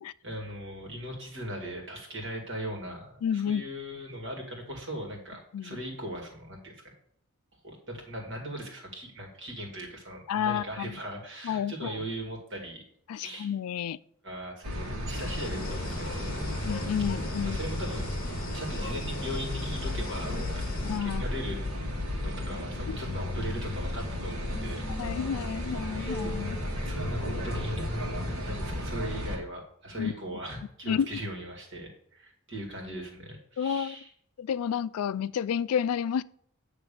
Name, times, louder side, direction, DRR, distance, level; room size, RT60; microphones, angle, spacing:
voice 1, 0.2-6.8 7.6-12.8 13.1-13.5 14.2-16.5 17.4-18.1 18.5-21.6 22.2-24.8 25.9-26.2 26.8-27.8 28.4-34.1, equal, 55° right, 2.3 m, -39 dB
voice 2, 3.2-3.6 5.5-5.8 10.3-11.0 11.4-11.9 13.1-14.0 16.6-17.6 20.8-21.2 22.9-23.0 25.0-26.6 30.0-30.1 30.9-31.1 33.6-34.0 34.4-36.2, left 8 dB, 80° left, 0.3 m, -30 dB
sound 1, 14.6-29.4, left 1 dB, 80° right, 1.8 m, -33 dB
sound 2, 15.1-21.0, left 3 dB, 40° left, 0.9 m, -41 dB
sound 3, 21.3-28.5, left 1 dB, 15° left, 1.5 m, -45 dB
9.4 x 3.4 x 6.8 m
head